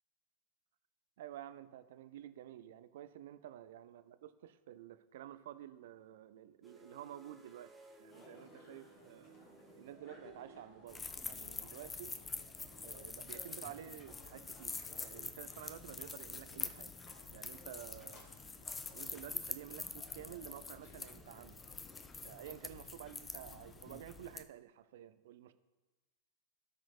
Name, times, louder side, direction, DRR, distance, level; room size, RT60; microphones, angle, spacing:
voice 1, 1.2-7.7 8.0-9.4 9.8-12.2 12.8-17.0 17.3-18.3 18.9-21.6 22.2-25.5, right 11 dB, 55° right, 13 dB, 0.5 m, -51 dB
sound 1, 6.6-13.0, right 2 dB, 10° right, 1.4 m, -63 dB
sound 2, 8.1-24.0, left 1 dB, 40° left, 2.2 m, -60 dB
sound 3, 10.9-24.4, left 4 dB, 15° left, 0.5 m, -46 dB
17.5 x 5.9 x 2.4 m, 1.2 s
figure-of-eight pair, 90°, 0 cm